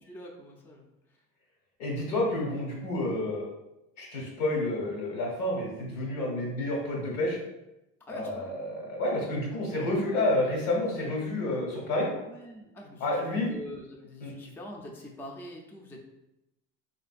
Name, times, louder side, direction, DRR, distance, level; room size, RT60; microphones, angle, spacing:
voice 1, 0.0-0.9 8.1-8.5 12.2-16.0, left 1 dB, 5° left, 0 dB, 0.4 m, -44 dB
voice 2, 1.8-3.5 4.0-7.4 8.1-12.1 13.0-13.5 14.2-14.3, left 1 dB, 85° left, -2 dB, 1.4 m, -29 dB
3.7 x 2.5 x 2.4 m, 0.93 s
supercardioid pair, 95°, 37 cm